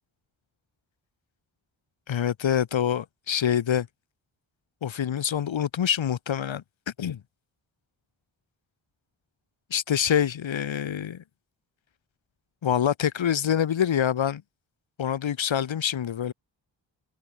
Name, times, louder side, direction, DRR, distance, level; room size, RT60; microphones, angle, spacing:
voice 1, 2.1-3.9 4.8-6.6 7.0-7.2 9.7-11.2 12.6-14.4 15.0-16.3, left 9 dB, 80° left, 1.8 m, -26 dB
cardioid pair, 70°, 45 cm